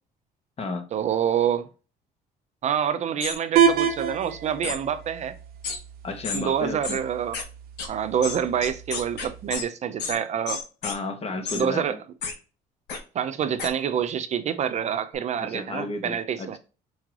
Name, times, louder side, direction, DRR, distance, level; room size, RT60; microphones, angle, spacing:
voice 1, 0.9-1.7 2.6-5.3 6.3-7.4 7.9-10.6 11.5-11.9 13.1-16.6, right 8 dB, 45° right, 0.4 m, -27 dB
sound 1, 3.2-3.4 4.6-4.8 5.6-5.8 6.2-6.4 6.8-7.0 7.3-7.4 7.8-7.9 8.2-9.6 10.0-10.2 10.5-11.0 11.4-11.6 12.2-12.3 12.9-13.0 13.6-13.7, left 5 dB, 80° left, 1.0 m, -31 dB
sound 2, 3.6-9.6, right 7 dB, 65° right, 0.8 m, -28 dB
voice 2, 6.0-7.0 10.8-12.0 15.5-16.6, left 3 dB, 35° left, 0.9 m, -32 dB
4.6 x 3.1 x 2.4 m
cardioid pair, 110°, 17 cm